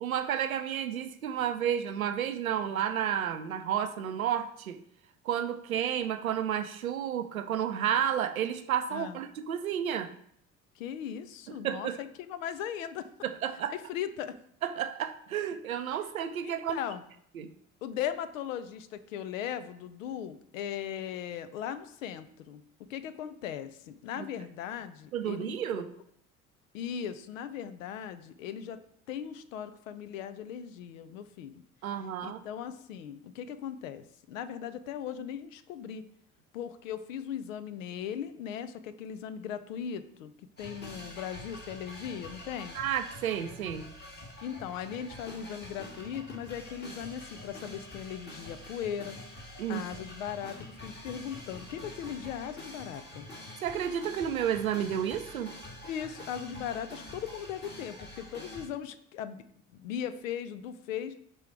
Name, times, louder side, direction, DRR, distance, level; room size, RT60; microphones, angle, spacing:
voice 1, 0.0-4.8 5.2-10.1 11.5-12.0 13.2-13.7 14.6-16.8 17.3-17.5 24.2-24.3 25.1-25.9 31.8-32.4 42.7-43.9 49.6-49.8 53.6-55.5, right 9 dB, 85° right, 10 dB, 0.5 m, -31 dB
voice 2, 10.8-13.1 13.7-14.4 16.4-17.0 17.8-22.6 22.9-25.8 26.7-28.8 29.1-31.5 32.2-36.0 36.5-42.8 44.4-49.2 49.7-53.3 55.8-59.4 59.7-61.1, left 9 dB, 70° left, 12 dB, 0.6 m, -38 dB
sound 1, 40.6-58.7, left 1 dB, 25° left, 1.8 m, -46 dB
5.5 x 3.8 x 4.5 m, 0.67 s
figure-of-eight pair, 55°, 41 cm